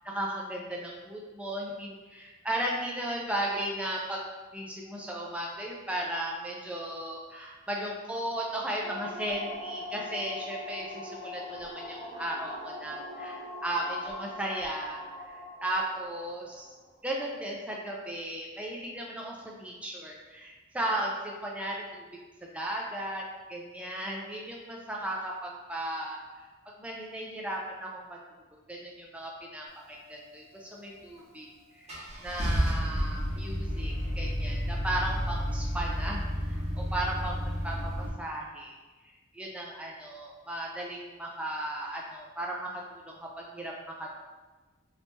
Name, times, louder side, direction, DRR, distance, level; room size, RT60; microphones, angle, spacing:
voice 1, 0.0-4.2 4.5-16.7 17.0-22.0 22.5-23.2 23.5-26.4 26.8-28.2 28.7-31.5 31.7-38.7 39.0-43.7 44.0-44.1, right 1 dB, 5° right, -2 dB, 0.4 m, -36 dB
sound 1, 8.8-16.9, left 2 dB, 35° left, 1.5 m, -42 dB
Car / Engine starting, 31.2-31.3 31.9-38.1, equal, 30° right, 1.0 m, -31 dB
2.8 x 2.8 x 3.3 m, 1.3 s
head